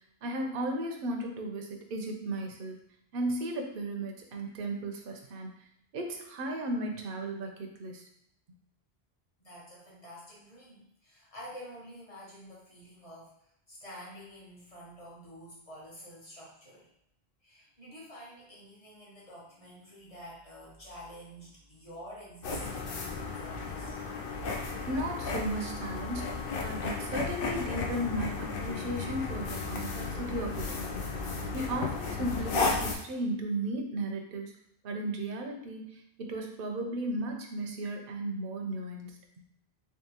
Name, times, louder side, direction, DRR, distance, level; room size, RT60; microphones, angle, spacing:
voice 1, 0.2-2.8 3.1-5.5 5.9-8.0 24.8-31.2 31.5-34.5 34.8-39.4, right 1 dB, 65° right, 3 dB, 0.8 m, -35 dB
voice 2, 9.4-16.9 17.4-24.2, equal, 35° left, -6 dB, 1.3 m, -49 dB
sound 1, 22.4-33.0, left 4 dB, 65° left, 0.8 m, -34 dB
3.5 x 3.4 x 2.9 m, 0.77 s
omnidirectional pair, 1.0 m